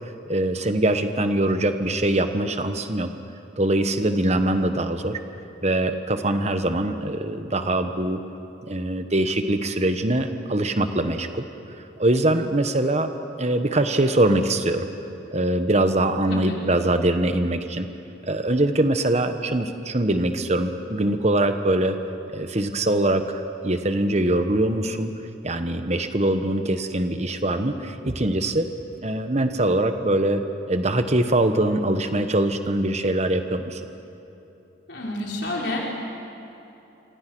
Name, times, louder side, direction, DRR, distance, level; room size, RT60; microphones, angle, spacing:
voice 1, 0.3-3.1 3.6-5.2 5.6-8.2 8.7-11.4 12.0-13.1 13.4-14.9 15.3-17.9 18.2-22.0 22.3-25.1 25.4-28.7 29.0-30.4 30.7-33.8, right 1 dB, 35° right, 8 dB, 1.2 m, -23 dB
voice 2, 16.3-16.6 34.9-35.8, left 1 dB, 65° left, -2 dB, 4.0 m, -29 dB
27.0 x 25.0 x 6.2 m, 2.9 s
head